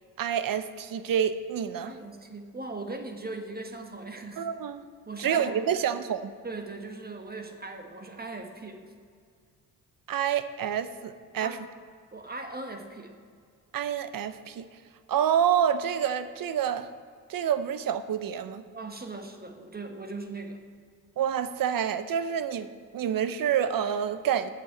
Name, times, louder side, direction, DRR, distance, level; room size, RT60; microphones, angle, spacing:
voice 1, 0.2-1.9 4.4-4.8 5.2-6.3 10.1-11.6 13.7-14.7 15.1-16.9 17.3-18.6 21.2-22.7 22.9-24.5, right 8 dB, 55° right, 12 dB, 0.7 m, -28 dB
voice 2, 1.8-4.5 5.1-5.7 6.4-8.9 11.4-11.6 12.1-13.2 18.7-20.6, right 3 dB, 25° right, 5 dB, 1.4 m, -39 dB
7.7 x 6.8 x 7.7 m, 2.1 s
supercardioid pair, 65°, 39 cm